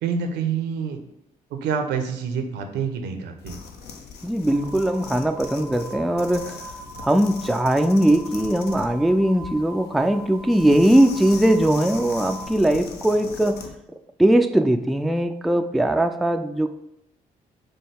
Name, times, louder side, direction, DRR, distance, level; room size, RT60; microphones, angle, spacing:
voice 1, 0.0-1.0 1.5-3.6, right 6 dB, 70° right, 6 dB, 0.6 m, -27 dB
sound 1, 3.4-13.8, left 5 dB, 65° left, 0.6 m, -40 dB
voice 2, 4.2-6.6 7.0-13.6 13.9-16.7, right 1 dB, ahead, 7 dB, 0.3 m, -20 dB
sound 2, 4.5-12.5, right 1 dB, 85° left, 1.6 m, -41 dB
6.3 x 2.2 x 3.3 m, 0.83 s
hypercardioid pair, 40°, 18 cm